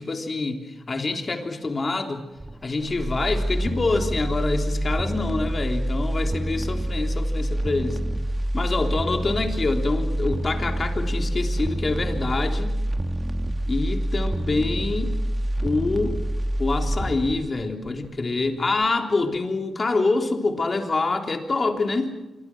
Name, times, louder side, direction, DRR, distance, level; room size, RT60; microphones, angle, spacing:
voice 1, 0.0-2.2 2.6-8.0 8.5-12.7 13.7-15.1 15.6-16.2 16.6-22.2, left 3 dB, 40° left, 4 dB, 3.5 m, -26 dB
sound 1, 2.4-18.5 18.8-18.9, right 1 dB, 20° right, 1.4 m, -27 dB
26.5 x 23.0 x 6.2 m, 1.1 s
cardioid pair, 75°, 0 cm